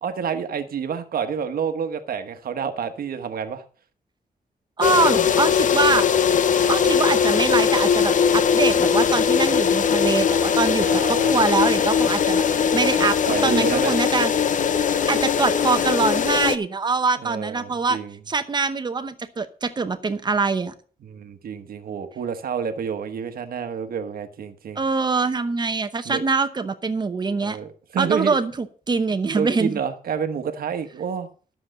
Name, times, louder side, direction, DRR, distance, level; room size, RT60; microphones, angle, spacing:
voice 1, 0.0-3.6 6.8-6.9 10.8-11.3 13.3-14.0 17.2-18.2 21.0-24.8 26.0-26.2 27.4-28.4 29.3-31.3, right 7 dB, 75° right, 1.2 m, -29 dB
sound 1, 4.8-16.6, left 7 dB, 55° left, 0.7 m, -20 dB
voice 2, 4.8-6.1 6.7-14.3 15.1-18.0 18.3-20.7 24.8-27.6 28.0-29.8, right 4 dB, 30° right, 0.8 m, -24 dB
12.5 x 7.2 x 6.5 m
wide cardioid pair, 165°, 16 cm